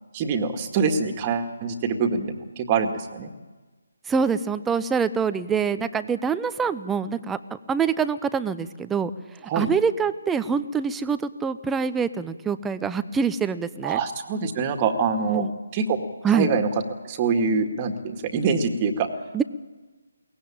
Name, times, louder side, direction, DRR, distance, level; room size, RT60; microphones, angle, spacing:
voice 1, 0.1-3.3 9.5-9.7 13.8-15.5 15.7-16.0 16.3-16.7 17.0-19.1, right 5 dB, 25° right, 5 dB, 2.0 m, -24 dB
voice 2, 4.1-9.1 9.5-14.0 15.3-15.5 16.2-16.5 19.3-19.4, right 6 dB, 10° right, 12 dB, 0.7 m, -25 dB
22.5 x 18.0 x 8.8 m, 1.3 s
figure-of-eight pair, 150°, 0 cm